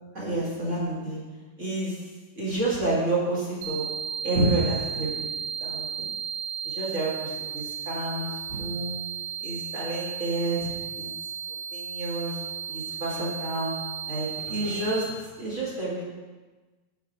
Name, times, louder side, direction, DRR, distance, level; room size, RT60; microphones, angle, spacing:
voice 1, 0.1-1.2 1.6-2.0 2.4-3.9 4.2-5.2 5.6-5.9 6.6-9.0 9.4-11.1 11.7-12.4 12.7-13.7 14.1-16.1, right 2 dB, 30° right, -6 dB, 1.8 m, -29 dB
sound 1, 3.6-15.0, right 7 dB, 75° right, 1.6 m, -34 dB
9.0 x 5.9 x 4.7 m, 1.3 s
omnidirectional pair, 3.3 m